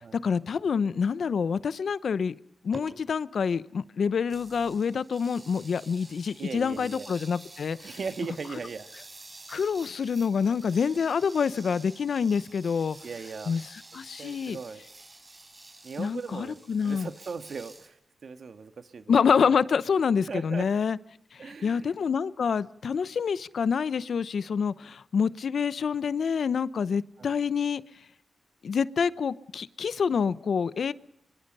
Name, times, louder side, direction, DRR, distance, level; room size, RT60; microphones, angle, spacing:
voice 1, 0.2-2.3 2.6-8.0 9.5-13.0 13.5-14.6 16.0-17.1 19.1-21.0 21.3-27.8 28.6-30.9, left 6 dB, 70° left, 17 dB, 0.8 m, -27 dB
sound 1, 2.7-2.9 4.3-17.9, right 2 dB, 30° right, 5.0 m, -49 dB
voice 2, 6.4-7.1 7.8-8.9 9.8-9.9 13.0-13.6 14.2-14.9 15.8-19.5 20.3-20.7 21.4-21.9 27.2-27.5, right 5 dB, 65° right, 9 dB, 1.8 m, -38 dB
25.0 x 23.5 x 5.5 m, 0.75 s
cardioid pair, 80°, 0 cm